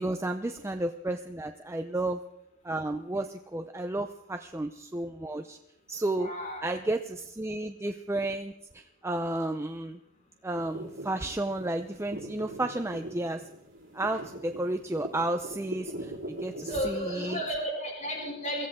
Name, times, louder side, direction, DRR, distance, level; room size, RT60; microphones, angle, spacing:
voice 1, 0.0-2.2 2.6-5.6 5.9-6.3 6.6-10.0 10.4-13.4 13.9-17.4, right 2 dB, 15° right, 6 dB, 0.6 m, -32 dB
voice 2, 6.2-6.8 16.6-18.7, equal, 40° left, -1 dB, 5.6 m, -33 dB
sound 1, 10.6-17.5, right 1 dB, 65° right, 3.4 m, -42 dB
23.0 x 16.0 x 3.7 m, 0.85 s
head